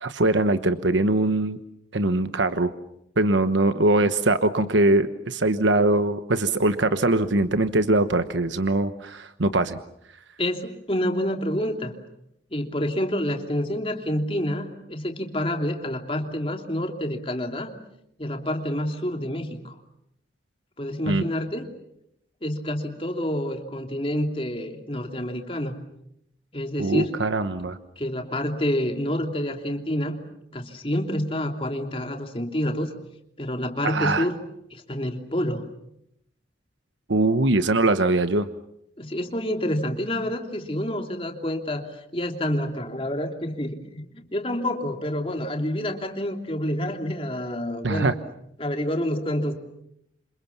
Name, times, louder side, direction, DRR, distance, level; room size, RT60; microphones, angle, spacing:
voice 1, 0.0-1.6 1.9-2.7 3.2-9.8 21.1-21.2 26.8-27.8 33.8-34.3 37.1-38.5 47.8-48.1, right 2 dB, 85° right, 10 dB, 1.1 m, -22 dB
voice 2, 10.4-11.9 12.5-17.7 18.2-19.8 20.8-21.7 22.4-25.8 26.5-27.2 28.0-30.2 30.5-32.9 33.4-34.4 34.7-35.7 39.0-48.2 48.6-49.5, left 1 dB, 30° left, 4 dB, 3.0 m, -28 dB
28.5 x 26.5 x 7.2 m, 0.77 s
head